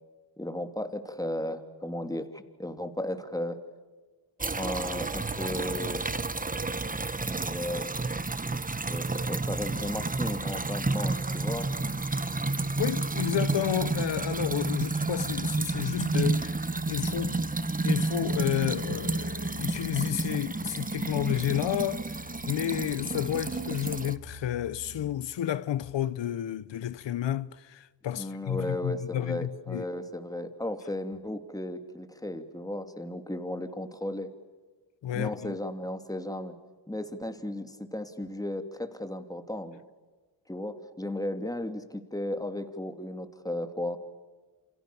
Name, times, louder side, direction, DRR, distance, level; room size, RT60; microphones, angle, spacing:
voice 1, 0.4-3.6 4.4-6.1 7.3-7.9 8.9-11.7 28.1-34.3 35.1-36.6 36.9-39.8 40.5-44.0, left 1 dB, 10° left, 2.9 m, -35 dB
sound 1, 4.4-24.2, right 3 dB, 20° right, 1.2 m, -31 dB
sound 2, 9.5-25.1, equal, 70° right, 2.9 m, -48 dB
voice 2, 12.8-16.6 16.9-17.4 17.8-29.8 35.0-35.6, left 11 dB, 90° left, 0.9 m, -31 dB
28.5 x 28.0 x 7.0 m
cardioid pair, 80°, 42 cm